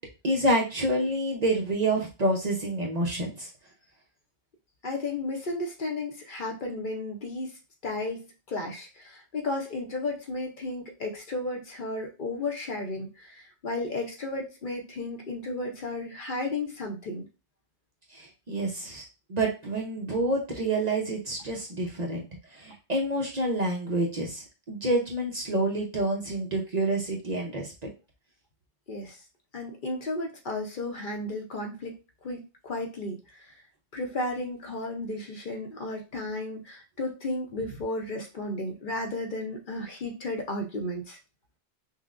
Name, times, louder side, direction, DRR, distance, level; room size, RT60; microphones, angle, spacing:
voice 1, 0.2-3.5 18.1-19.0 19.3-22.3 22.5-27.7, right 1 dB, 40° right, -1 dB, 0.7 m, -28 dB
voice 2, 4.8-7.5 7.8-17.2 28.9-29.2 29.5-33.4 33.9-41.2, left 2 dB, 50° left, 2 dB, 0.8 m, -33 dB
5.6 x 2.1 x 2.4 m, 0.30 s
omnidirectional pair, 1.2 m